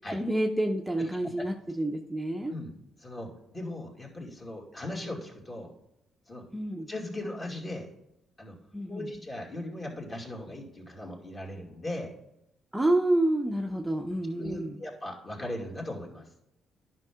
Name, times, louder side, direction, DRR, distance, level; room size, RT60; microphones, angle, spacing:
voice 1, 0.1-2.5 6.5-6.9 8.7-9.1 12.7-14.7, right 1 dB, 10° right, 1 dB, 0.7 m, -28 dB
voice 2, 1.0-1.5 2.5-2.7 3.0-5.7 6.3-6.4 6.9-7.9 8.4-8.5 8.9-12.1 14.4-16.3, left 1 dB, 30° left, -1 dB, 2.5 m, -38 dB
10.5 x 5.8 x 3.6 m, 0.84 s
cardioid pair, 90°, 0 cm